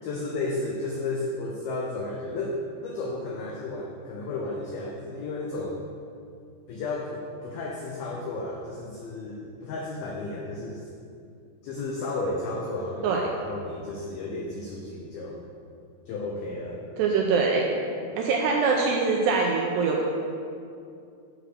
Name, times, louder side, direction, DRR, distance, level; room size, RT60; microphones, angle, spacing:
voice 1, 0.0-5.8 6.7-10.9 11.6-15.4 16.1-16.8, left 2 dB, 90° left, -1 dB, 2.1 m, -33 dB
voice 2, 17.0-17.7 18.2-20.1, right 4 dB, 85° right, 0 dB, 2.5 m, -23 dB
8.5 x 4.9 x 6.6 m, 2.5 s
omnidirectional pair, 5.4 m